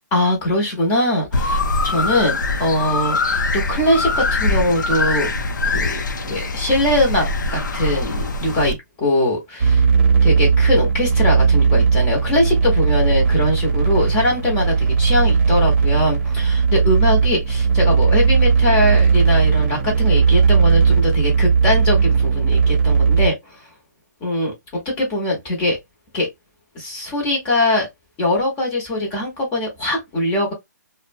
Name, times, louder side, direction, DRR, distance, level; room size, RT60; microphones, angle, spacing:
voice 1, 0.1-5.3 5.7-9.8 10.2-23.6 24.2-24.5 25.0-25.8 26.1-26.3 26.7-27.9 28.2-30.5, left 1 dB, 20° left, 0.8 m, -21 dB
sound 1, 1.3-8.7, left 3 dB, 80° left, 0.6 m, -22 dB
sound 2, 9.6-23.3, right 5 dB, 40° right, 0.7 m, -16 dB
2.6 x 2.1 x 2.5 m
hypercardioid pair, 160°, 10 cm